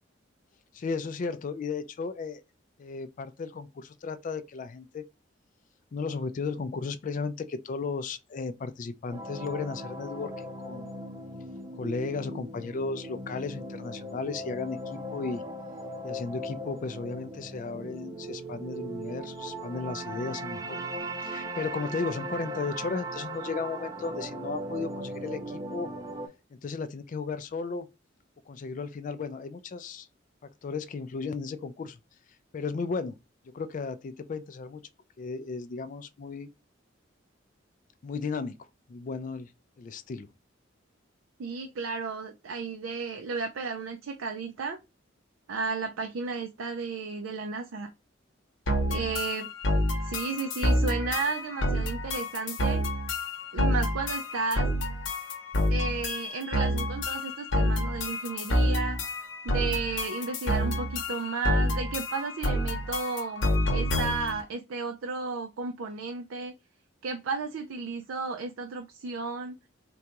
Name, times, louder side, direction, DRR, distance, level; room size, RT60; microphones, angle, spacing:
voice 1, 0.7-2.4 2.8-5.1 5.9-10.3 10.6-10.9 11.7-15.4 16.0-20.8 21.2-25.9 26.6-27.9 28.5-30.1 30.6-32.0 32.5-33.2 33.5-34.8 35.2-36.5 38.0-38.6 38.9-39.5 39.8-40.3, left 4 dB, 40° left, 0.3 m, -35 dB
sound 1, 9.1-26.3, right 1 dB, 20° right, 0.6 m, -38 dB
voice 2, 41.4-44.8 45.5-47.9 48.9-49.5 50.0-52.8 53.5-54.7 55.7-59.0 59.4-66.5 67.0-69.6, right 4 dB, 80° right, 0.4 m, -33 dB
sound 2, 48.7-64.4, left 1 dB, 65° left, 0.8 m, -28 dB
3.7 x 2.3 x 2.8 m
head